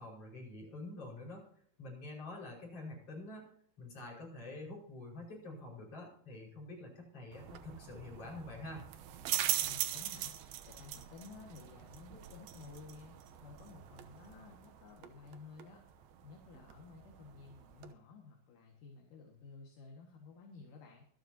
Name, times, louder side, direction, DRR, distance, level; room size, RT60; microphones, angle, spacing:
voice 1, 0.0-1.4 1.8-3.5 3.8-8.9, left 2 dB, 40° left, -3 dB, 6.3 m, -47 dB
sound 1, 7.3-17.9, right 12 dB, 90° right, 2.9 m, -42 dB
voice 2, 9.6-10.3 10.6-15.8 16.2-21.1, left 4 dB, 65° left, 1 dB, 3.4 m, -54 dB
24.5 x 9.3 x 2.9 m, 0.64 s
omnidirectional pair, 4.1 m